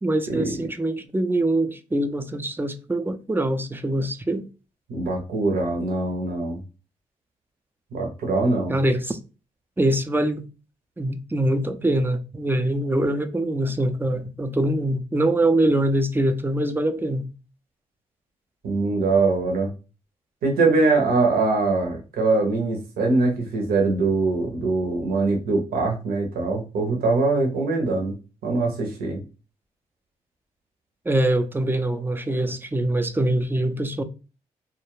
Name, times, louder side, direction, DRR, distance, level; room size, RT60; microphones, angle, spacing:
voice 1, 0.0-4.4 8.7-9.2 9.8-10.5 11.0-17.3 31.1-34.0, right 1 dB, 15° right, 0.4 m, -23 dB
voice 2, 4.9-6.6 7.9-8.8 18.6-19.7 20.4-28.1 28.4-29.2, right 3 dB, 75° right, 0.8 m, -22 dB
2.3 x 2.1 x 3.1 m
supercardioid pair, 45°, 16 cm